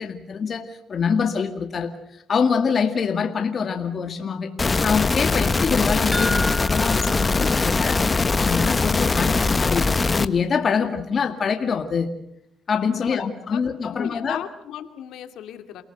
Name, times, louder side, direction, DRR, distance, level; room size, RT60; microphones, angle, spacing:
voice 1, 0.0-4.5 4.8-12.1 12.7-14.4, left 6 dB, 45° left, 5 dB, 2.2 m, -25 dB
sound 1, 4.6-10.3, left 3 dB, 25° left, 1.1 m, -21 dB
sound 2, 6.1-8.7 8.9-9.0 9.5-9.6, left 1 dB, 5° left, 1.9 m, -32 dB
voice 2, 12.9-15.8, left 10 dB, 85° left, 8 dB, 2.4 m, -37 dB
29.5 x 18.5 x 8.0 m, 0.77 s
cardioid pair, 90°, 0 cm